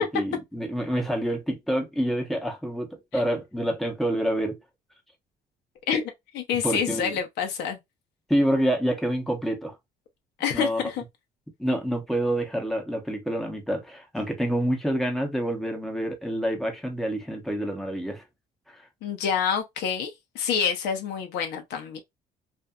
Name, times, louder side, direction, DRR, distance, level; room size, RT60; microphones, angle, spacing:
voice 1, 0.0-4.6 6.6-7.2 8.3-9.7 10.5-10.9 11.6-18.2, equal, ahead, 0.9 m, -27 dB
voice 2, 5.9-7.8 10.4-11.0 19.0-22.0, left 7 dB, 80° left, 0.9 m, -28 dB
2.7 x 2.5 x 2.2 m
cardioid pair, 110°, 17 cm